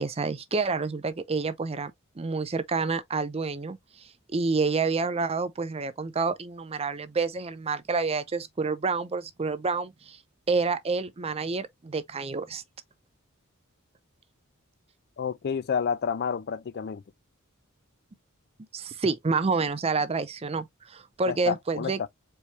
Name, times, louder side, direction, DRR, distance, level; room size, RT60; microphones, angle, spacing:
voice 1, 0.0-10.2 10.5-12.6 18.7-22.1, right 4 dB, 30° right, 0.5 m, -28 dB
voice 2, 15.2-17.0 21.3-22.1, left 6 dB, 50° left, 0.4 m, -29 dB
4.6 x 3.2 x 2.8 m
head